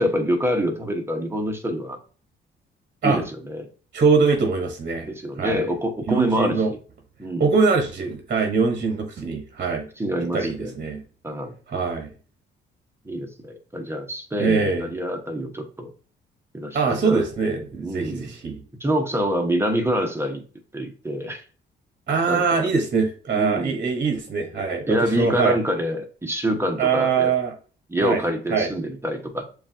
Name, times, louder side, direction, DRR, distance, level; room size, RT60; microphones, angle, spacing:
voice 1, 0.0-2.0 3.0-3.7 5.0-6.8 7.2-7.5 10.0-10.7 11.2-11.5 13.0-15.9 16.5-17.3 17.8-18.3 18.8-20.4 20.7-21.4 22.3-22.7 23.3-23.8 24.9-27.3 27.9-29.4, equal, 10° right, 4 dB, 1.0 m, -26 dB
voice 2, 3.9-5.1 5.4-5.6 6.1-6.7 7.4-9.9 10.3-11.0 11.7-12.1 14.4-14.9 16.7-18.6 22.1-25.5 26.8-27.5 28.0-28.2 28.5-28.7, right 5 dB, 45° right, 3 dB, 1.0 m, -22 dB
7.0 x 2.4 x 2.6 m, 0.38 s
cardioid pair, 90°, 20 cm